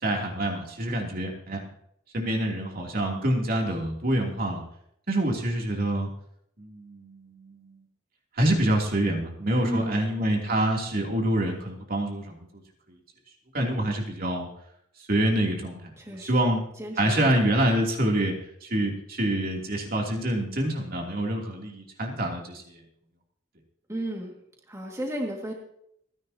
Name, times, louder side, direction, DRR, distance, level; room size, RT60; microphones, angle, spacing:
voice 1, 0.0-1.6 2.1-4.6 5.1-6.1 6.6-7.8 8.4-12.6 13.5-14.5 15.1-15.9 16.2-16.6 17.0-22.8, right 1 dB, 50° right, 0 dB, 3.0 m, -26 dB
voice 2, 9.6-10.2 16.0-16.3 16.8-17.2 23.9-24.3 24.7-25.5, right 1 dB, 15° right, 0 dB, 2.1 m, -33 dB
29.5 x 10.5 x 2.9 m, 0.73 s
head